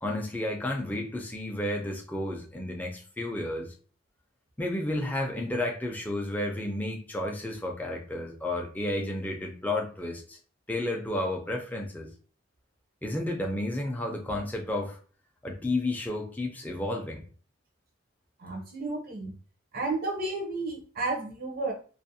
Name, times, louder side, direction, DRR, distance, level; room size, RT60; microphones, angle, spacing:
voice 1, 0.0-3.7 4.6-10.4 10.7-12.1 13.0-15.0 15.4-17.2, left 1 dB, 10° left, 0 dB, 0.4 m, -32 dB
voice 2, 18.4-19.3 19.7-21.7, right 2 dB, 50° right, 1 dB, 0.6 m, -32 dB
2.4 x 2.0 x 2.6 m, 0.40 s
head